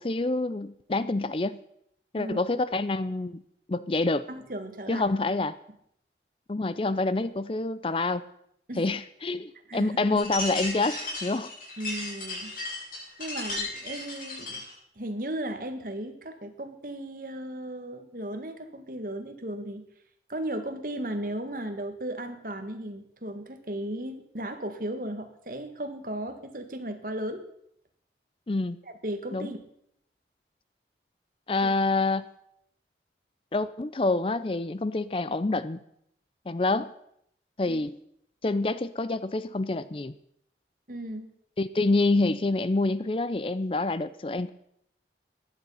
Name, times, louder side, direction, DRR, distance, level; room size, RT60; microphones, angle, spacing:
voice 1, 0.0-1.6 2.1-3.4 3.7-4.3 4.9-5.6 6.5-8.2 8.8-11.5 28.5-28.8 29.3-29.5 31.5-32.3 33.5-35.8 36.5-36.9 37.6-38.0 38.4-40.1 41.6-44.5, left 2 dB, 30° left, 15 dB, 0.5 m, -27 dB
voice 2, 4.3-5.0 8.7-8.9 9.7-10.2 11.8-12.5 13.2-14.6 15.0-19.8 20.3-27.4 29.0-29.6 31.6-31.7 37.7-37.8 40.9-41.3, right 1 dB, 50° right, 7 dB, 1.6 m, -35 dB
sound 1, 10.2-14.7, left 2 dB, 50° left, 7.5 m, -35 dB
15.5 x 11.0 x 5.6 m, 0.73 s
head